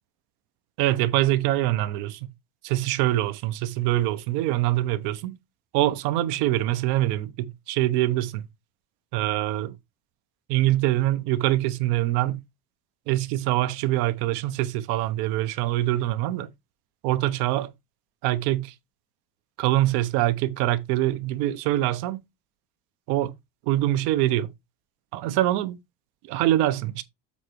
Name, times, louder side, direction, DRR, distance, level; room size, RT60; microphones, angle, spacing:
voice 1, 0.8-2.2 2.6-5.4 5.7-8.4 9.1-9.7 10.5-12.4 13.1-16.5 17.0-17.7 18.2-18.7 19.6-22.2 23.1-23.4 23.7-24.5 25.1-25.8 26.3-27.0, right 15 dB, 80° right, 1.1 m, -24 dB
7.6 x 4.3 x 4.7 m
cardioid pair, 160°, 39 cm